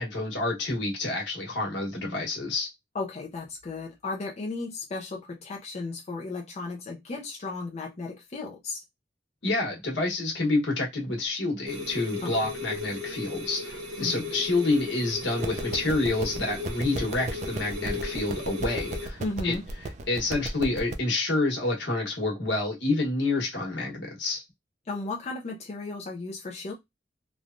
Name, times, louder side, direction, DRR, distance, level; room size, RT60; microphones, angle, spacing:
voice 1, 0.0-2.7 9.4-19.5 20.1-24.4, left 2 dB, 75° left, 1.2 m, -28 dB
voice 2, 2.9-8.8 12.2-12.5 14.0-14.3 19.2-19.6 24.9-26.7, left 3 dB, 40° left, 0.5 m, -35 dB
sound 1, 11.7-19.1, left 3 dB, 70° right, 0.9 m, -36 dB
sound 2, 15.4-20.9, right 2 dB, 40° right, 0.4 m, -36 dB
3.1 x 2.2 x 2.5 m
head